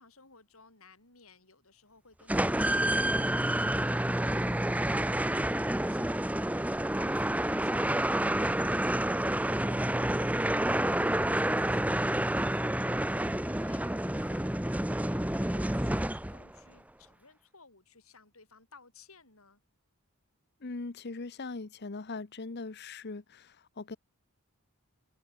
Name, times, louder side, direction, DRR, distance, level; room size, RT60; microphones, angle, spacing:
voice 1, 0.0-19.6, left 4 dB, 75° left, 7.1 m, -59 dB
sound 1, 2.3-16.6, right 1 dB, 5° right, 1.0 m, -29 dB
voice 2, 20.6-24.0, left 3 dB, 50° left, 0.9 m, -40 dB
head